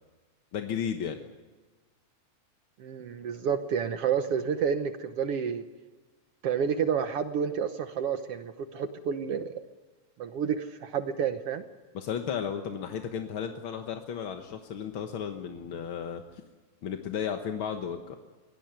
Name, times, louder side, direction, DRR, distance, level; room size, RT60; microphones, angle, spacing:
voice 1, 0.5-1.2 11.9-16.4 16.8-18.2, left 8 dB, 55° left, 5 dB, 1.6 m, -34 dB
voice 2, 2.8-5.6 6.4-9.6 10.2-11.6, right 7 dB, 65° right, 9 dB, 1.6 m, -30 dB
24.0 x 17.5 x 9.4 m, 1.3 s
omnidirectional pair, 3.6 m